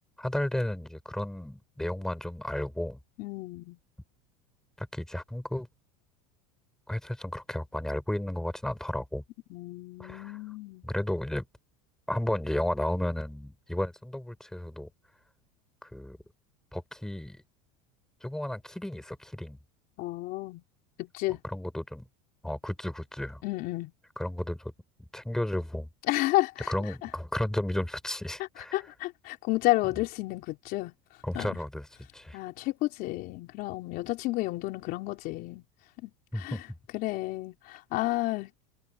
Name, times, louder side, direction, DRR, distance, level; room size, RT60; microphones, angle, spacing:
voice 1, 0.2-3.0 4.8-5.7 6.9-9.2 10.0-10.4 10.8-11.5 12.1-14.9 15.8-16.2 16.7-17.4 18.2-19.6 21.4-22.1 22.4-23.4 24.2-24.7 25.0-25.9 26.7-28.8 31.2-31.9 32.1-32.4 36.3-36.6, left 1 dB, 5° left, 4.6 m, -33 dB
voice 2, 3.2-3.8 9.5-10.8 20.0-20.6 21.0-21.4 23.4-23.9 26.0-27.1 28.6-30.9 31.3-31.6 32.3-35.6 36.0-36.6 36.9-38.5, left 19 dB, 55° left, 3.8 m, -31 dB
supercardioid pair, 130°, 18 cm